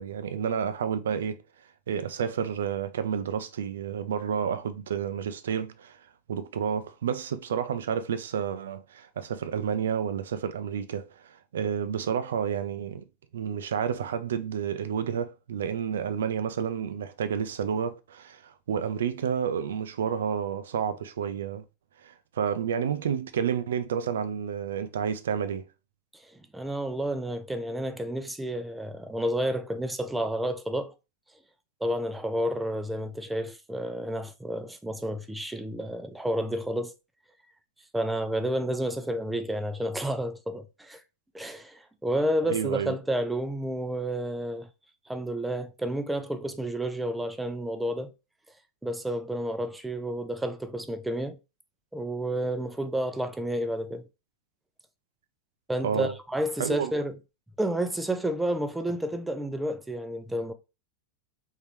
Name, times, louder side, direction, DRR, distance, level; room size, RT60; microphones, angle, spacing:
voice 1, 0.0-1.4 1.9-6.0 6.3-13.0 13.3-21.6 22.0-25.7 42.4-42.9 55.8-56.1 56.6-57.0, right 8 dB, 60° right, 0.4 m, -30 dB
voice 2, 26.5-30.9 31.8-36.9 37.9-41.0 41.3-44.7 45.1-48.1 48.8-51.4 51.9-54.0 55.7-57.1 57.6-60.5, right 1 dB, 5° right, 0.5 m, -30 dB
3.7 x 3.1 x 3.0 m
figure-of-eight pair, 90°, 0 cm